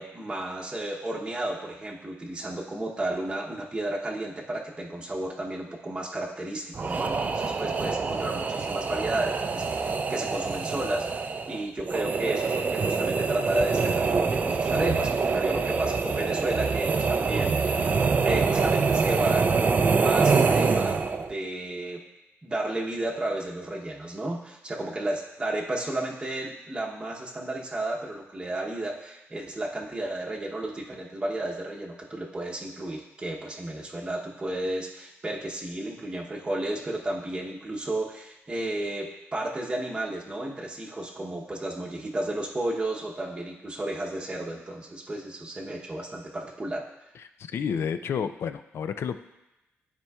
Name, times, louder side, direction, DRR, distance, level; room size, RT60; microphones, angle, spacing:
voice 1, 0.0-17.9 18.2-22.0 22.4-39.1 39.3-46.8, right 1 dB, 20° right, -3 dB, 0.8 m, -33 dB
sound 1, 6.8-21.3, right 4 dB, 35° right, 0.4 m, -25 dB
voice 2, 47.2-49.2, left 7 dB, 65° left, 10 dB, 0.4 m, -31 dB
12.5 x 4.4 x 2.3 m, 0.96 s
cardioid pair, 125°, 5 cm